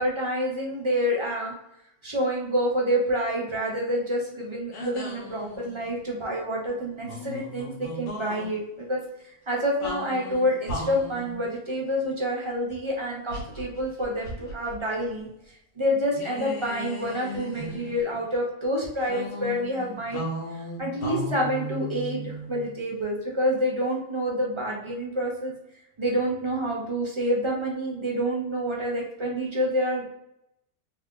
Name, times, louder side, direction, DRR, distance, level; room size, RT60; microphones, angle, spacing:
voice 1, 0.0-1.5 2.0-15.3 15.8-20.2 20.5-25.5 26.0-30.1, equal, 50° right, -2 dB, 0.3 m, -28 dB
sound 1, 4.7-6.0 7.0-8.5 9.8-11.4 13.3-14.8 15.0-15.2 16.1-18.2 19.0-22.8, left 1 dB, 80° left, 1.4 m, -36 dB
3.4 x 2.4 x 3.6 m, 0.81 s
omnidirectional pair, 1.6 m